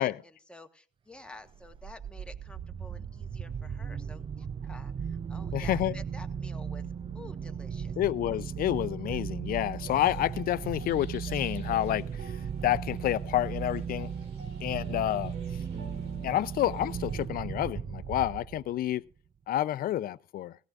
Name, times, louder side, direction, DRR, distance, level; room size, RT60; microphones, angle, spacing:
voice 1, 0.0-6.9 7.1-8.0, left 2 dB, 5° left, 1.3 m, -50 dB
sound 1, 1.5-18.9, right 7 dB, 30° right, 0.5 m, -37 dB
voice 2, 5.5-5.9 8.0-12.4 12.6-14.1 14.6-15.3 16.2-19.0 19.5-20.6, left 13 dB, 60° left, 0.6 m, -29 dB
sound 2, 9.8-17.3, right 3 dB, 90° right, 4.0 m, -50 dB
18.5 x 14.5 x 2.5 m
cardioid pair, 110°, 17 cm